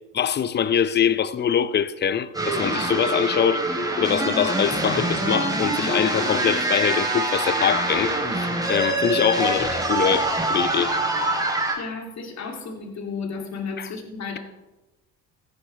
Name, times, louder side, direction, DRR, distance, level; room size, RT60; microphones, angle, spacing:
voice 1, 0.1-3.7 4.0-11.0 13.8-13.9, left 8 dB, 25° left, 0.6 m, -23 dB
sound 1, 2.3-11.7, right 2 dB, 10° right, 3.7 m, -24 dB
voice 2, 11.8-14.4, left 4 dB, 40° left, 2.7 m, -33 dB
16.0 x 10.0 x 3.3 m
hypercardioid pair, 70°, 39 cm